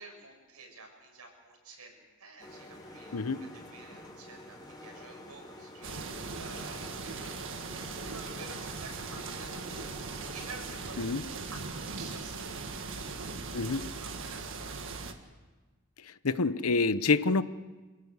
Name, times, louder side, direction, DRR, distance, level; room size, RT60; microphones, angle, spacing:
voice 1, 0.0-3.4 3.7-4.6 4.8-14.9, right 3 dB, 90° right, 1 dB, 6.8 m, -50 dB
sound 1, 2.4-11.0, left 1 dB, 20° left, 3.5 m, -49 dB
sound 2, 5.8-15.1, right 4 dB, 60° right, 1.8 m, -39 dB
voice 2, 16.0-17.4, left 4 dB, 70° left, 14 dB, 0.8 m, -27 dB
26.0 x 16.5 x 8.1 m, 1.3 s
head